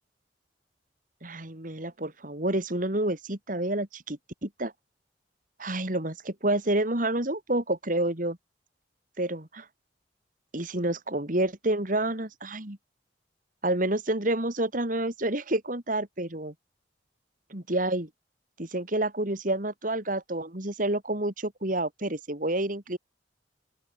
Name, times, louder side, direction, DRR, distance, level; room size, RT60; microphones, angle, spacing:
voice 1, 1.2-4.7 5.6-8.4 9.2-9.7 10.5-12.8 13.6-16.5 17.5-18.1 18.6-23.0, right 1 dB, 45° right, 2.9 m, -29 dB
open air
head